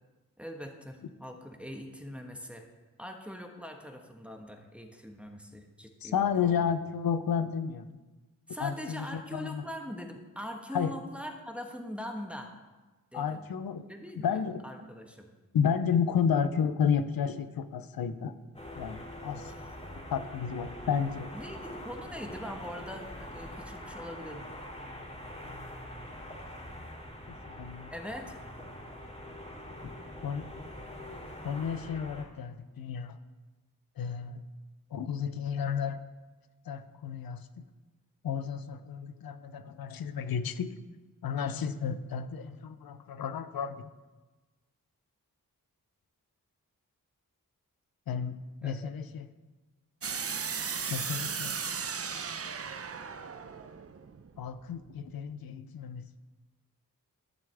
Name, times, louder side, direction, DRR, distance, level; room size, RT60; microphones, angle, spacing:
voice 1, 0.4-2.7 3.0-6.8 8.5-12.5 13.1-13.5 13.8-15.3 19.5-19.7 21.3-24.4 27.9-28.2 48.6-48.9, equal, 5° right, 3 dB, 1.3 m, -42 dB
voice 2, 6.0-7.9 8.6-9.6 10.7-10.9 13.1-13.8 14.2-14.6 15.5-18.3 18.8-19.5 20.1-21.3 27.3-27.9 30.2-30.5 31.4-33.2 34.0-34.4 34.9-36.0 36.7-37.4 38.2-40.7 41.2-43.8 48.1-49.3 50.9-51.5 54.4-56.2, left 7 dB, 85° left, 12 dB, 0.6 m, -32 dB
sound 1, 18.5-32.2, left 1 dB, 20° left, 3.2 m, -44 dB
Sweep (Flanging), 50.0-54.9, right 6 dB, 40° right, 0.6 m, -36 dB
12.0 x 7.0 x 3.4 m, 1.2 s
cardioid pair, 40°, 35 cm